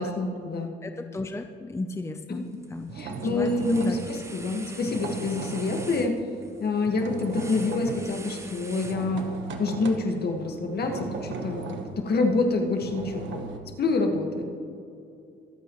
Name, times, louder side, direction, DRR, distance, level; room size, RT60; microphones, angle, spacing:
voice 1, 0.0-0.7 2.3-2.6 2.9-6.2 6.6-9.3 9.6-13.4 13.8-14.5, left 3 dB, 55° left, 3 dB, 1.7 m, -27 dB
voice 2, 0.8-2.4 2.7-2.9 3.2-4.0, left 2 dB, 15° left, 6 dB, 0.6 m, -33 dB
sound 1, 2.3-2.7 3.0-9.5, right 2 dB, 15° right, 1.0 m, -44 dB
sound 2, 2.8-6.1 6.4-13.6, right 5 dB, 70° right, 1.3 m, -37 dB
23.0 x 8.3 x 3.2 m, 2.7 s
cardioid pair, 90°, 20 cm